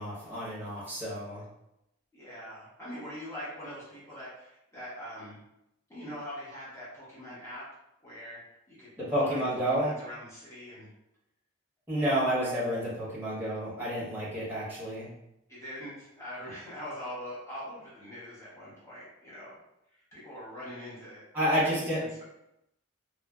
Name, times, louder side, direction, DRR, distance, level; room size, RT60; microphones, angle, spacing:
voice 1, 0.0-1.4 9.0-9.9 11.9-15.1 21.3-22.0, equal, 10° right, -9 dB, 1.0 m, -30 dB
voice 2, 2.1-5.4 5.9-7.7 8.0-8.4 8.7-8.9 9.2-10.9 11.9-12.5 15.5-19.6 19.9-21.2 21.5-21.9, equal, 15° left, -10 dB, 0.9 m, -43 dB
3.1 x 2.0 x 2.3 m, 0.84 s
head